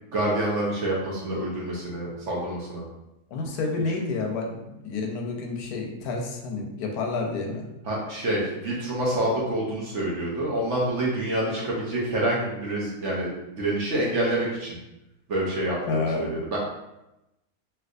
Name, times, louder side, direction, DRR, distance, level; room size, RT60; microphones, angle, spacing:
voice 1, 0.1-2.8 7.9-13.3 13.6-14.7 15.3-16.6, right 1 dB, 55° right, -4 dB, 1.0 m, -27 dB
voice 2, 3.3-7.7 15.9-16.3, left 3 dB, 90° left, 1 dB, 1.2 m, -29 dB
3.3 x 2.9 x 2.5 m, 0.91 s
omnidirectional pair, 1.6 m